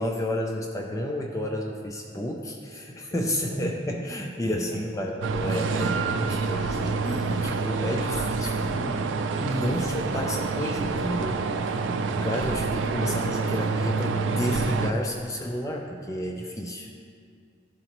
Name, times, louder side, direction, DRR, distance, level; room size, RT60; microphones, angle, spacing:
voice 1, 0.0-9.0 9.4-11.7 12.2-16.9, left 1 dB, 15° left, 1 dB, 0.4 m, -31 dB
voice 2, 3.5-4.0 4.4-4.8 5.4-6.2 11.8-12.3 16.8-17.1, right 2 dB, 45° right, -3 dB, 1.2 m, -37 dB
sound 1, 5.2-14.9, right 4 dB, 90° right, 0.4 m, -27 dB
sound 2, 8.4-13.9, right 1 dB, 65° right, 1.2 m, -43 dB
11.5 x 4.0 x 3.0 m, 2.2 s
head